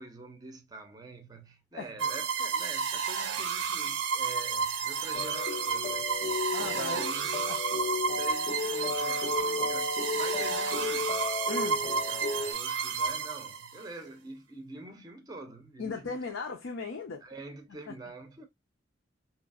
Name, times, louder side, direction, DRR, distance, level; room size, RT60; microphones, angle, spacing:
voice 1, 0.0-7.5 8.2-11.1 11.6-16.1 17.2-18.5, right 2 dB, 20° right, 0.5 m, -46 dB
sound 1, 2.0-13.8, right 6 dB, 75° right, 0.5 m, -31 dB
sound 2, 5.1-12.5, left 4 dB, 45° left, 0.5 m, -34 dB
voice 2, 6.5-7.0 7.5-7.6 11.5-11.9 15.8-17.2 17.9-18.0, left 4 dB, 90° left, 0.6 m, -37 dB
2.8 x 2.5 x 2.3 m
head